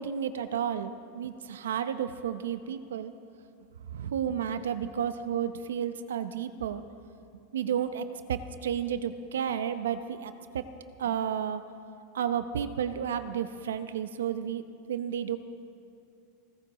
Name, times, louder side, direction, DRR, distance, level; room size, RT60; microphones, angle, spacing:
voice 1, 0.0-3.1 3.9-6.8 7.5-10.6 11.0-11.6 12.1-14.6 14.9-15.4, right 8 dB, 90° right, 11 dB, 0.8 m, -32 dB
29.0 x 15.0 x 3.1 m, 2.6 s
hypercardioid pair, 120°, 0 cm